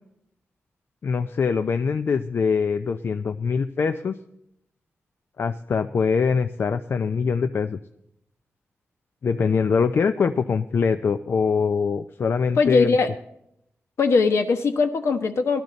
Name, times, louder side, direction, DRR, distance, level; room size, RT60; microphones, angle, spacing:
voice 1, 1.0-4.2 5.4-7.8 9.2-13.0, left 5 dB, 55° left, 9 dB, 0.5 m, -23 dB
voice 2, 12.5-13.1 14.0-15.6, left 4 dB, 75° left, 7 dB, 1.1 m, -20 dB
18.0 x 12.0 x 4.0 m, 0.79 s
wide cardioid pair, 105°, 5 cm